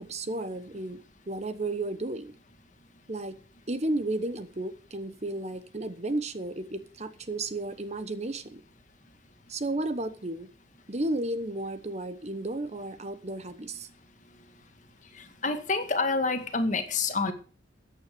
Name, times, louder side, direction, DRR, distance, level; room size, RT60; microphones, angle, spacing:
voice 1, 0.0-2.3 3.1-3.4 3.7-8.6 9.5-10.5 10.9-13.9, right 2 dB, 35° right, 12 dB, 1.1 m, -33 dB
voice 2, 15.4-17.3, left 3 dB, 40° left, 7 dB, 2.1 m, -27 dB
14.0 x 8.9 x 6.9 m, 0.39 s
head